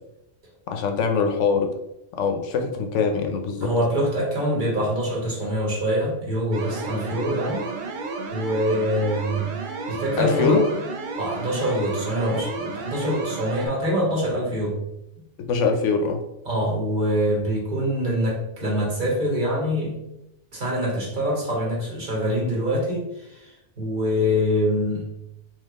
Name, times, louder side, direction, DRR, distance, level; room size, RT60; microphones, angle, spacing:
voice 1, 0.7-1.7 2.2-3.7 10.2-10.7 15.5-16.2, left 5 dB, 80° left, 5 dB, 0.9 m, -22 dB
voice 2, 3.6-7.7 8.3-9.5 9.9-10.6 11.1-14.8 16.4-20.0 20.5-25.1, equal, 40° right, -4 dB, 1.3 m, -24 dB
sound 1, 6.5-13.7, right 3 dB, 55° right, 0.5 m, -32 dB
3.7 x 2.9 x 3.5 m, 0.86 s
omnidirectional pair, 1.3 m